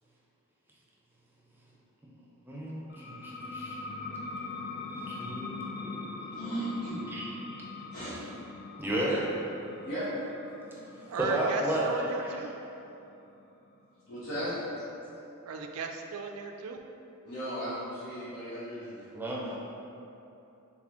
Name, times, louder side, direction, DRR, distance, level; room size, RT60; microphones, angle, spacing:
voice 1, 2.5-3.8 5.1-6.1 7.1-7.6 8.8-9.4 10.7-10.8 11.2-12.3 14.4-14.5 19.1-19.6, right 1 dB, 10° right, -5 dB, 0.6 m, -33 dB
sound 1, 2.9-14.2, left 3 dB, 45° left, 0.4 m, -42 dB
voice 2, 6.3-7.1 7.9-8.2 9.8-10.1 14.1-14.5 17.2-19.1, right 1 dB, 70° left, -12 dB, 1.0 m, -36 dB
voice 3, 11.1-12.5 15.4-16.8, right 4 dB, 75° right, 4 dB, 0.4 m, -36 dB
4.1 x 3.5 x 3.0 m, 2.8 s
head